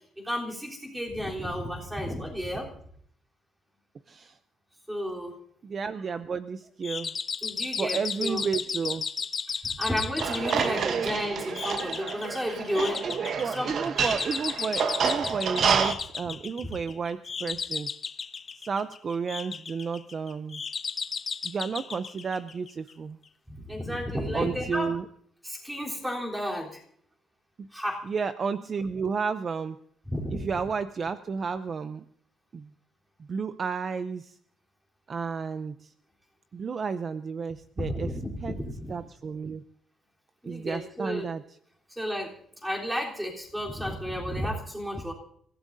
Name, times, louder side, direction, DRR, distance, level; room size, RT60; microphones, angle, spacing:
voice 1, 0.2-2.7 4.9-5.3 7.4-8.4 9.5-13.0 13.4-13.7 15.2-15.3 23.5-25.0 25.4-26.8 27.7-28.0 30.1-30.5 37.8-38.9 40.4-41.3 42.0-42.3 42.6-45.1, equal, 5° right, -2 dB, 3.5 m, -32 dB
voice 2, 4.1-4.4 5.6-7.1 7.8-9.0 10.5-11.1 12.8-17.9 18.6-20.6 21.4-23.2 24.3-25.0 27.6-27.7 28.0-29.8 30.3-32.0 32.5-32.7 33.2-34.4 35.1-35.9 36.5-38.1 38.4-38.5 38.9-39.6 40.4-41.4, right 5 dB, 35° right, 11 dB, 0.5 m, -32 dB
sound 1, 6.8-22.9, left 6 dB, 35° left, 0.6 m, -35 dB
sound 2, 10.2-15.9, right 6 dB, 55° right, 1.0 m, -29 dB
29.0 x 16.0 x 2.7 m, 0.64 s
cardioid pair, 155°, 0 cm